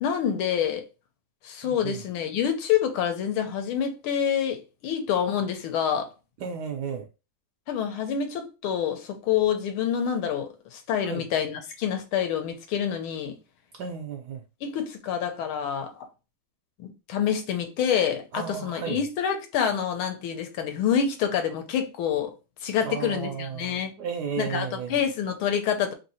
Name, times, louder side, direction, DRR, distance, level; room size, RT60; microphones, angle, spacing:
voice 1, 0.0-0.8 1.4-6.1 7.7-13.3 14.6-15.9 16.8-22.3 22.6-23.9 24.4-25.9, left 8 dB, 80° left, 1.6 m, -27 dB
voice 2, 1.6-2.0 6.4-7.1 11.0-11.2 13.7-14.4 18.3-19.0 22.8-25.0, right 6 dB, 80° right, 0.9 m, -34 dB
3.5 x 2.7 x 4.2 m
omnidirectional pair, 2.3 m